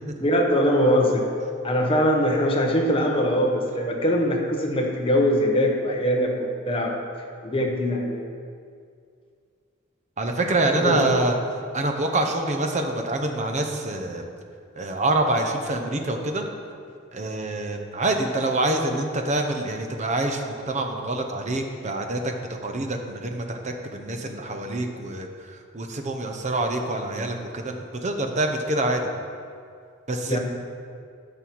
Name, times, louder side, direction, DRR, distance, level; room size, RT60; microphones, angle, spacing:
voice 1, 0.2-1.2 1.6-6.3 6.7-7.0 7.5-8.2 10.8-11.1 30.3-30.4, equal, 30° left, 0 dB, 1.2 m, -22 dB
voice 2, 10.2-11.4 11.7-14.2 14.8-16.5 17.1-29.1 30.1-30.4, right 2 dB, 35° right, 4 dB, 0.9 m, -26 dB
13.0 x 5.5 x 4.6 m, 2.3 s
head